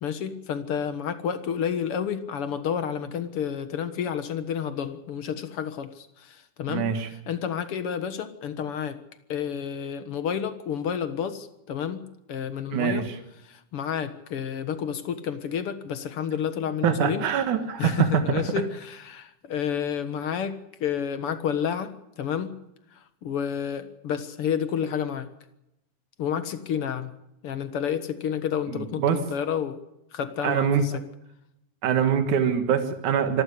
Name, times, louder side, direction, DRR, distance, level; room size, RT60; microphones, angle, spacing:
voice 1, 0.0-9.0 9.3-13.1 13.5-17.3 17.8-22.6 23.0-25.3 26.2-27.1 27.4-29.8 30.1-31.0, left 8 dB, 55° left, 11 dB, 2.1 m, -30 dB
voice 2, 6.7-7.1 12.7-13.2 16.8-18.2 28.7-29.2 30.4-30.8 31.8-33.4, right 8 dB, 90° right, 8 dB, 3.1 m, -24 dB
25.0 x 14.0 x 8.4 m, 0.86 s
omnidirectional pair, 3.4 m